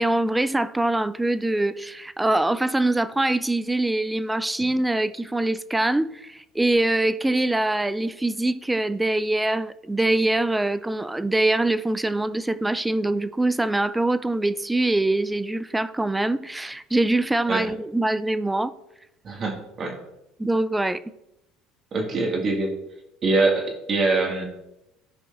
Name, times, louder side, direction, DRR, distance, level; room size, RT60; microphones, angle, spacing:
voice 1, 0.0-18.7 20.4-21.0, right 2 dB, 10° right, 0.4 m, -23 dB
voice 2, 19.2-20.0 21.9-22.7 23.2-24.4, right 3 dB, 40° right, 1.9 m, -23 dB
13.5 x 5.0 x 2.6 m
supercardioid pair, 100°, 0 cm